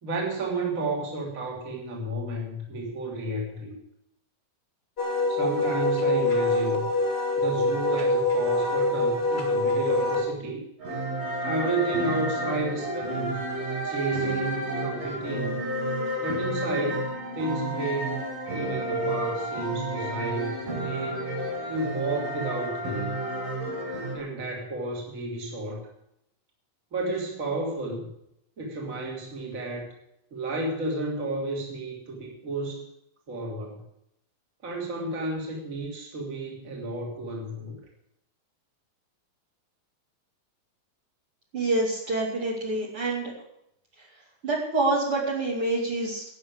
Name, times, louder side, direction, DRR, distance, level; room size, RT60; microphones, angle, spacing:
voice 1, 0.0-3.8 5.3-6.9 7.4-10.6 11.4-13.4 13.8-15.6 16.2-17.1 17.3-18.2 18.5-21.3 21.7-23.2 24.1-25.9 26.9-28.1 28.6-29.9 30.3-32.8 33.3-33.8 34.6-37.8, right 2 dB, 25° right, -1 dB, 2.9 m, -32 dB
Wind instrument woodwind instrument, 5.0-10.2, left 2 dB, 20° left, 2.0 m, -24 dB
sound 1, 10.8-24.2, right 1 dB, 75° right, 6.0 m, -31 dB
voice 2, 41.5-43.3 44.4-46.2, right 2 dB, 40° right, -3 dB, 3.3 m, -26 dB
12.0 x 8.5 x 8.3 m, 0.77 s
omnidirectional pair, 4.1 m